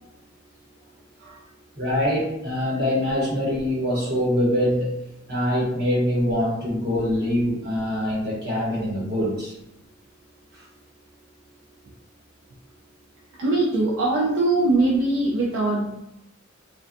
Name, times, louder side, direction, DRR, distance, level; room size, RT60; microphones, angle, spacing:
voice 1, 1.8-5.0 5.3-9.5, left 1 dB, 50° right, -5 dB, 0.9 m, -24 dB
voice 2, 13.4-16.0, right 2 dB, 75° right, -4 dB, 0.4 m, -21 dB
2.5 x 2.2 x 2.5 m, 0.84 s
head